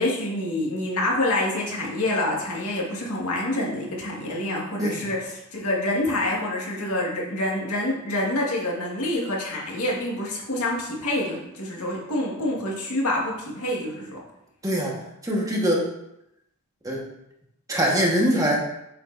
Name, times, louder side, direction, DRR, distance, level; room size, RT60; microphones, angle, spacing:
voice 1, 0.0-14.2, left 1 dB, 90° left, -3 dB, 1.8 m, -27 dB
voice 2, 14.6-14.9 15.2-15.8 16.8-17.0 17.7-18.6, equal, 15° right, -3 dB, 1.4 m, -22 dB
7.6 x 6.3 x 2.6 m, 0.84 s
head